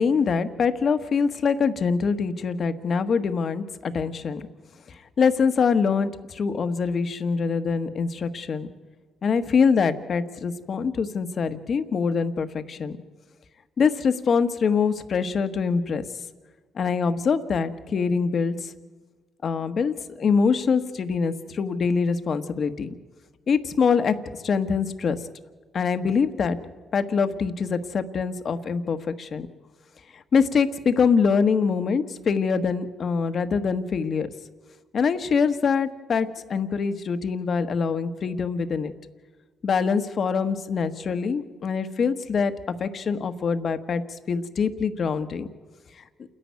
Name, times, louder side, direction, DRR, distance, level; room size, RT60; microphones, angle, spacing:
voice 1, 0.0-4.5 5.2-8.7 9.2-13.0 13.8-16.0 16.8-18.7 19.4-22.9 23.5-24.1 24.4-25.2 25.7-26.6 26.9-29.5 30.1-34.3 34.9-38.9 39.6-42.5 42.8-44.0 44.3-45.5, left 5 dB, 50° left, 10 dB, 1.3 m, -24 dB
28.5 x 11.0 x 9.5 m, 1.4 s
cardioid pair, 90°, 0 cm